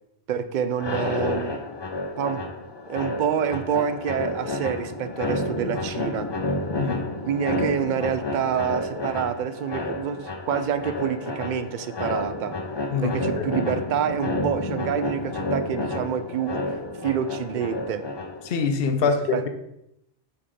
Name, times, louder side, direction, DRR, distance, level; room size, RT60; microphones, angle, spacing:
voice 1, 0.3-1.6 2.2-2.4 2.9-6.3 7.3-12.6 13.0-16.7 17.0-18.1 19.3-19.5, right 8 dB, 60° right, 11 dB, 0.6 m, -27 dB
sound 1, 0.7-18.6, left 2 dB, 30° left, 0.5 m, -30 dB
voice 2, 12.9-13.4 18.5-19.5, left 5 dB, 65° left, 7 dB, 0.9 m, -25 dB
5.7 x 4.1 x 4.9 m, 0.82 s
omnidirectional pair, 1.1 m